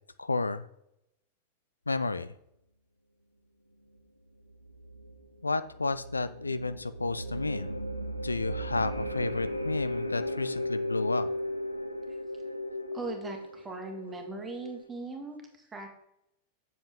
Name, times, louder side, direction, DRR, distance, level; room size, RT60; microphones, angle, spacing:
voice 1, 0.2-0.7 1.9-2.3 5.4-7.8 8.2-11.3, left 3 dB, 80° left, 14 dB, 0.3 m, -31 dB
sound 1, 4.5-14.8, equal, 90° right, 0.6 m, -36 dB
voice 2, 12.9-15.9, right 3 dB, 15° right, 3 dB, 1.5 m, -40 dB
7.4 x 6.7 x 3.6 m, 0.80 s
figure-of-eight pair, 90°, 0 cm